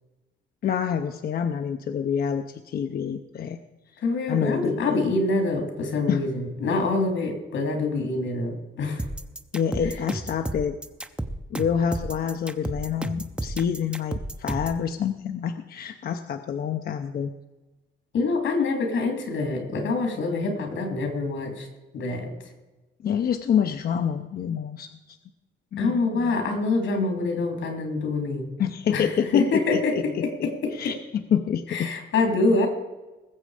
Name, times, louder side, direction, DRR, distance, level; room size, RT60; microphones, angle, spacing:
voice 1, 0.6-3.6 4.3-5.0 6.1-6.2 9.5-10.8 11.5-17.3 23.0-25.2 25.7-26.3 28.6-31.9, left 8 dB, 50° left, 7 dB, 0.7 m, -27 dB
voice 2, 4.0-9.1 9.8-9.9 18.1-21.7 21.9-22.3 25.8-28.5 28.9-30.9 31.7-32.7, left 3 dB, 85° left, 4 dB, 3.2 m, -25 dB
sound 1, 9.0-14.8, right 1 dB, 5° right, 0.6 m, -32 dB
20.0 x 7.9 x 5.0 m, 1.1 s
wide cardioid pair, 170°, 19 cm